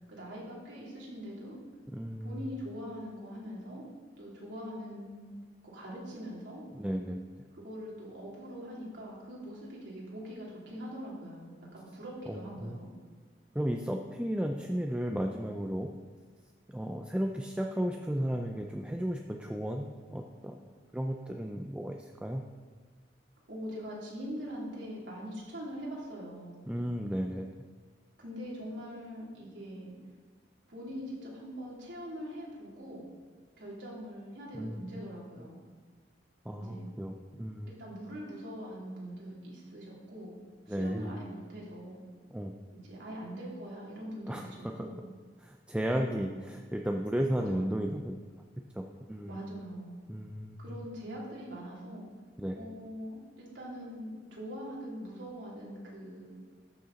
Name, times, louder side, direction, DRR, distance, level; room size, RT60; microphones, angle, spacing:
voice 1, 0.1-1.6 2.2-3.8 4.2-5.3 5.6-6.6 7.5-12.9 23.5-26.7 28.2-29.9 30.7-33.0 33.6-35.6 36.6-36.9 37.7-40.4 40.7-42.0 42.8-45.0 45.9-46.3 47.3-47.7 49.3-50.0 50.6-52.1 52.5-56.4, equal, 85° right, -5 dB, 3.2 m, -42 dB
voice 2, 1.9-2.4 6.7-7.2 12.3-12.8 13.5-15.9 16.7-20.6 20.9-22.4 26.6-27.5 34.6-34.9 35.4-35.5 36.4-37.7 40.7-41.1 42.3-42.5 44.3-44.9 45.4-48.2 48.7-49.4 50.1-50.8 52.4-52.6, equal, 5° right, 3 dB, 0.4 m, -34 dB
13.5 x 6.6 x 4.1 m, 1.5 s
head